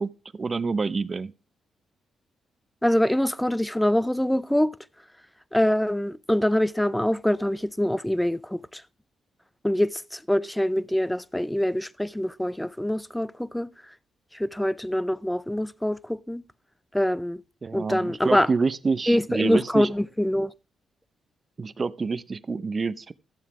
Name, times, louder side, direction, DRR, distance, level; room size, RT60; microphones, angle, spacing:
voice 1, 0.0-1.3 17.6-19.9 21.6-23.1, right 4 dB, 40° right, 0.7 m, -27 dB
voice 2, 2.8-4.7 5.5-8.8 9.6-13.7 14.3-16.4 16.9-17.4 17.7-18.5 19.1-20.5, left 1 dB, 5° left, 0.6 m, -24 dB
13.0 x 7.3 x 4.7 m
supercardioid pair, 65°, 0 cm